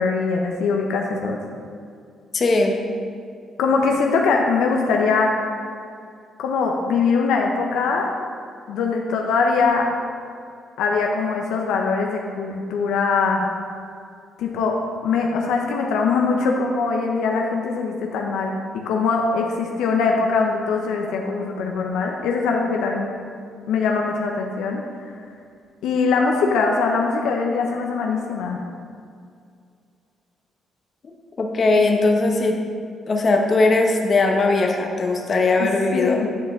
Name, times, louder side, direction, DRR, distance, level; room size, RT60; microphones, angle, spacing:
voice 1, 0.0-1.4 3.6-5.3 6.4-8.1 8.7-9.9 10.8-13.5 14.4-23.1 23.7-24.8 25.8-28.6 35.6-36.4, left 4 dB, 85° left, 1 dB, 0.6 m, -22 dB
voice 2, 2.3-2.8 31.4-32.6 33.1-36.3, left 3 dB, 45° left, 2 dB, 0.9 m, -19 dB
9.0 x 5.2 x 3.6 m, 2.3 s
cardioid pair, 90°, 0 cm